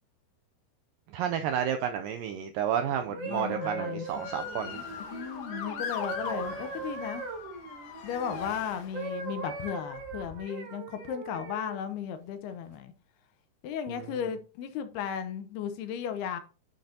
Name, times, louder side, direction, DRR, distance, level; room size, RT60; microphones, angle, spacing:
voice 1, 1.1-4.8 13.9-14.1, right 9 dB, 85° right, 2.0 m, -31 dB
sound 1, 3.0-8.5 8.9-11.8 12.5-12.7, right 4 dB, 45° right, 3.0 m, -40 dB
voice 2, 3.2-4.1 5.0-7.2 8.0-12.9 13.6-16.4, left 8 dB, 80° left, 2.9 m, -35 dB
Motor vehicle (road) / Siren, 4.1-9.3 10.0-10.4, left 7 dB, 65° left, 2.6 m, -40 dB
10.0 x 6.5 x 2.8 m
omnidirectional pair, 4.6 m